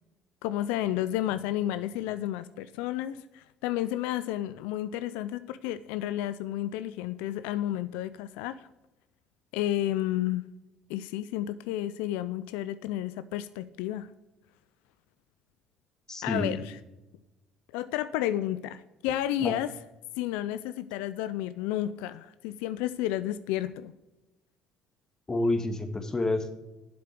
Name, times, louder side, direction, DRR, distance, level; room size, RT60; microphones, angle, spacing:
voice 1, 0.4-8.7 9.5-10.5 10.9-14.1 16.2-16.7 17.7-19.7 20.2-23.9, left 13 dB, 85° left, 14 dB, 0.4 m, -31 dB
voice 2, 16.1-16.6 19.4-19.6 25.3-26.5, left 2 dB, 25° left, 8 dB, 1.7 m, -29 dB
7.8 x 6.8 x 8.2 m, 1.0 s
supercardioid pair, 75°, 2 cm